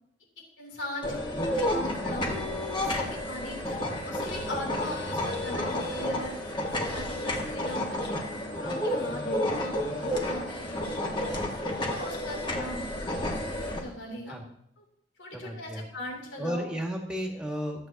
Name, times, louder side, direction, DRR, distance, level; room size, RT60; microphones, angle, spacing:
voice 1, 0.6-6.3 6.9-8.0 8.6-9.2 9.5-9.8 10.1-10.9 11.1-11.3 11.8-13.1 13.7-14.4 15.2-16.6, left 1 dB, 80° left, -1 dB, 3.2 m, -40 dB
sound 1, 1.0-13.8, left 1 dB, 25° left, 1.7 m, -31 dB
voice 2, 15.3-15.8 16.4-17.9, equal, 5° right, 1 dB, 1.7 m, -33 dB
14.5 x 8.2 x 2.9 m, 0.74 s
head